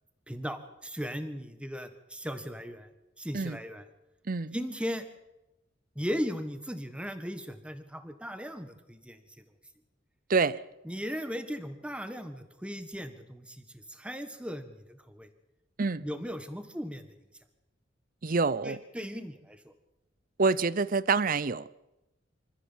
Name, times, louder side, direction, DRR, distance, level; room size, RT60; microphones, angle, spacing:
voice 1, 0.3-2.9 3.2-3.8 4.5-5.0 5.9-9.4 10.8-15.3 16.0-17.0 18.6-19.7, equal, 5° right, 1.6 m, -37 dB
voice 2, 18.2-18.8 20.4-21.7, right 4 dB, 45° right, 0.6 m, -27 dB
25.5 x 14.5 x 7.4 m
head